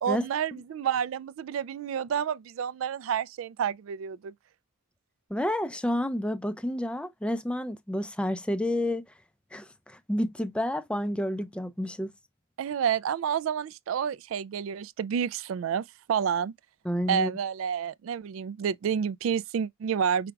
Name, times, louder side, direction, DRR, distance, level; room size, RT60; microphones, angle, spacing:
voice 1, 0.0-4.3 12.6-16.5 17.1-20.3, right 8 dB, 80° right, 0.3 m, -29 dB
voice 2, 5.3-9.0 9.5-12.1 16.8-17.3, left 1 dB, 5° left, 0.4 m, -30 dB
5.0 x 4.5 x 2.2 m
head